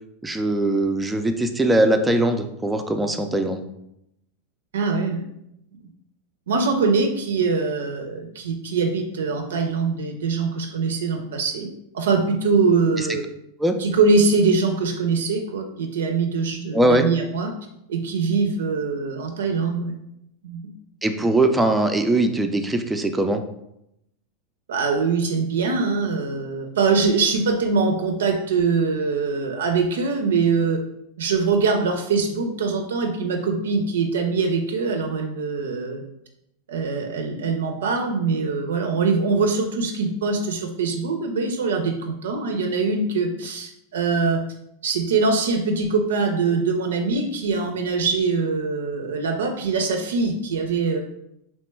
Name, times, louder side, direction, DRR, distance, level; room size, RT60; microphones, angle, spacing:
voice 1, 0.2-3.6 13.0-13.1 13.6-13.7 16.7-17.0 21.0-23.4, right 1 dB, 10° right, 5 dB, 0.3 m, -21 dB
voice 2, 4.7-5.2 6.5-11.7 11.9-13.2 13.8-17.5 17.9-19.9 20.4-20.7 24.7-30.8 31.2-36.0 36.7-44.4 44.8-51.0, right 4 dB, 85° right, 4 dB, 0.4 m, -23 dB
2.9 x 2.2 x 3.2 m, 0.81 s
hypercardioid pair, 110°, 0 cm